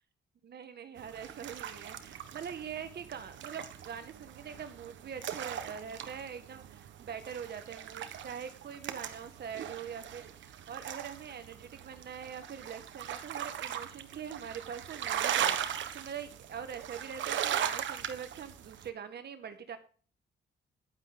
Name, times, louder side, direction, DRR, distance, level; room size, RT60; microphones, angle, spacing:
voice 1, 0.4-19.8, right 7 dB, 55° right, 9 dB, 1.8 m, -43 dB
sound 1, 1.0-18.9, right 9 dB, 70° right, 1.2 m, -39 dB
10.5 x 9.3 x 3.8 m, 0.40 s
cardioid pair, 90°, 20 cm